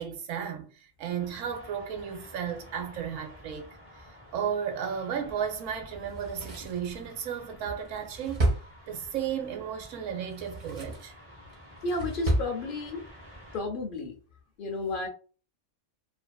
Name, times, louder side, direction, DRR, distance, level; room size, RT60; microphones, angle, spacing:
voice 1, 0.0-3.7 4.3-8.5 8.9-11.1, right 8 dB, 80° right, 1.0 m, -34 dB
sound 1, 1.2-13.6, equal, 15° right, 0.6 m, -51 dB
Drawer open or close, 6.0-9.3 10.2-11.1 11.5-12.5 12.8-12.9, right 1 dB, 45° right, 0.8 m, -32 dB
voice 2, 11.8-13.0 13.5-14.2 14.6-15.1, left 2 dB, 60° left, 0.6 m, -32 dB
2.5 x 2.5 x 2.2 m
omnidirectional pair, 1.3 m